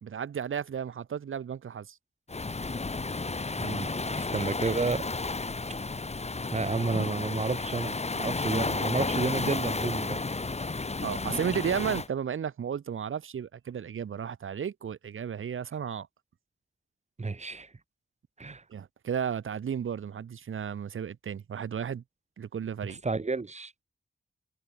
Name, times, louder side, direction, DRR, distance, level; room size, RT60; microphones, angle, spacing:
voice 1, 0.0-2.0 11.0-16.1 18.7-22.0 22.4-23.0, right 8 dB, 90° right, 1.8 m, -33 dB
Waves surf, 2.3-12.1, left 3 dB, 35° left, 2.2 m, -32 dB
voice 2, 3.6-5.1 6.5-10.2 17.2-17.7 18.4-18.6 22.8-23.8, right 3 dB, 35° right, 1.7 m, -31 dB
wide cardioid pair, 75°, 20 cm